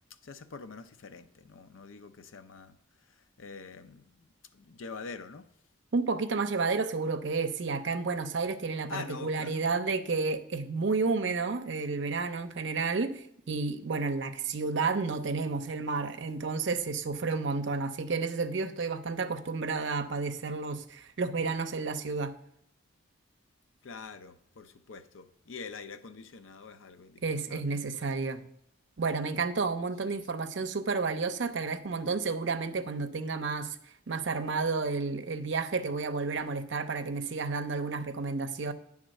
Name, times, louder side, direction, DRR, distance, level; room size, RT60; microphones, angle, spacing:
voice 1, 0.2-2.7 3.1-5.5 8.9-9.6 23.8-28.3 30.1-30.3, left 4 dB, 80° left, 0.6 m, -45 dB
voice 2, 5.9-22.3 27.2-28.4 29.0-33.8 34.1-38.7, right 4 dB, 65° right, 0.6 m, -31 dB
8.9 x 3.6 x 6.4 m
head